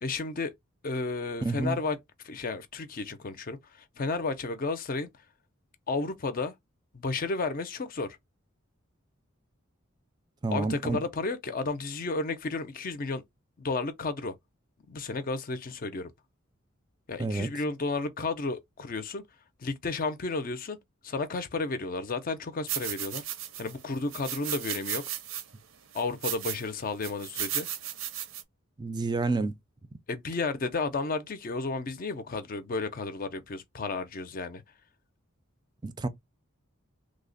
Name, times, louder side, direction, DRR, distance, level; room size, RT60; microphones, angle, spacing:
voice 1, 0.0-0.5 0.8-2.0 2.2-5.1 5.9-6.5 6.9-8.2 10.5-13.2 13.6-14.3 14.9-16.1 17.1-19.2 19.6-20.8 21.0-23.2 23.6-25.0 25.9-27.7 30.1-34.6, left 3 dB, 40° left, 0.5 m, -32 dB
voice 2, 1.4-1.8 10.4-11.0 17.2-17.5 28.8-29.5 35.8-36.1, right 3 dB, 20° right, 0.4 m, -29 dB
sound 1, 22.7-23.7 24.1-25.4 25.9-26.6 27.0-28.4, right 11 dB, 75° right, 0.7 m, -35 dB
3.2 x 2.1 x 3.8 m
head